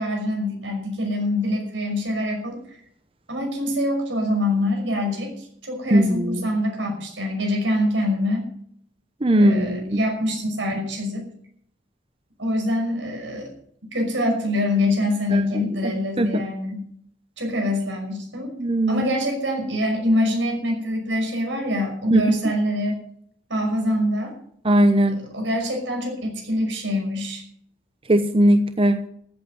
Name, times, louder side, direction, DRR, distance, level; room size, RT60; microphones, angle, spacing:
voice 1, 0.0-2.6 3.3-8.5 9.4-11.3 12.4-13.5 13.9-16.8 17.4-18.5 18.9-23.0 23.5-24.3 25.0-27.4, left 1 dB, 85° right, 2 dB, 5.8 m, -25 dB
voice 2, 5.9-6.5 9.2-10.0 15.3-15.6 16.2-16.4 18.6-19.0 22.1-22.3 24.6-25.2 28.1-29.0, right 1 dB, 30° right, 9 dB, 0.8 m, -19 dB
14.5 x 8.5 x 8.1 m, 0.65 s
head